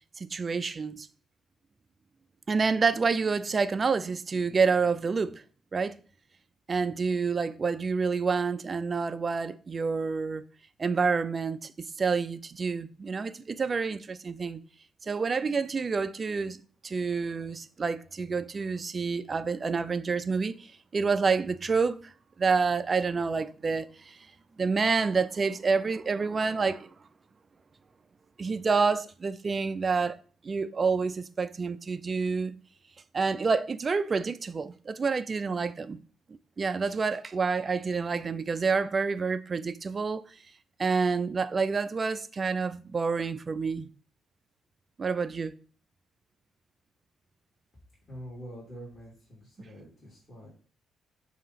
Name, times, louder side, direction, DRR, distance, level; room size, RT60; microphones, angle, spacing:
voice 1, 0.2-1.1 2.5-5.4 5.7-5.9 6.7-10.4 10.8-11.7 12.0-14.6 15.0-16.6 16.8-20.6 20.9-22.0 22.4-24.2 24.6-26.9 28.4-30.2 30.4-32.6 33.1-36.0 36.6-40.2 40.8-43.9 45.0-45.5, right 4 dB, 35° right, 0.4 m, -28 dB
voice 2, 48.1-50.5, equal, 25° left, 2.6 m, -45 dB
6.6 x 2.8 x 5.6 m
cardioid pair, 90°, 0 cm